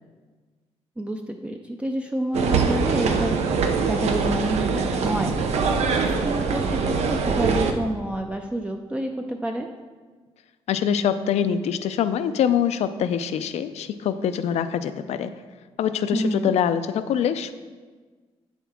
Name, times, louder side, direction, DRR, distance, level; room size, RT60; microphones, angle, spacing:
voice 1, 1.0-3.3 3.9-9.7 16.1-16.5, right 1 dB, 10° right, 3 dB, 0.4 m, -29 dB
sound 1, 2.3-7.7, right 5 dB, 80° right, 0.6 m, -23 dB
voice 2, 10.7-15.3 15.8-17.5, left 8 dB, 85° left, 12 dB, 0.4 m, -24 dB
8.4 x 7.2 x 3.6 m, 1.4 s
wide cardioid pair, 150°, 11 cm